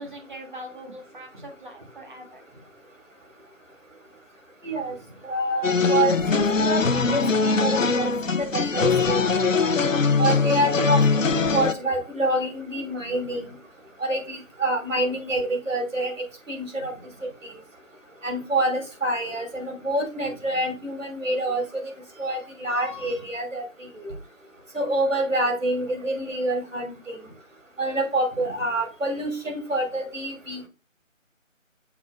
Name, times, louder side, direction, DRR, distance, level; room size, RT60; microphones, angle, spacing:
voice 1, 0.0-2.6 4.6-5.2 13.0-13.5 16.8-17.0 23.0-23.1 27.2-27.3 28.4-28.6, equal, 35° right, 2 dB, 1.9 m, -43 dB
voice 2, 4.6-4.9 5.2-8.1 8.4-9.2 10.2-13.4 14.0-16.1 16.5-16.9 17.2-17.6 18.2-21.8 22.2-24.1 24.7-27.2 27.8-30.7, right 1 dB, 70° right, 3 dB, 3.2 m, -27 dB
sound 1, 5.6-11.7, left 4 dB, 70° left, 0.8 m, -22 dB
7.1 x 3.5 x 4.3 m, 0.33 s
figure-of-eight pair, 165°, 40 cm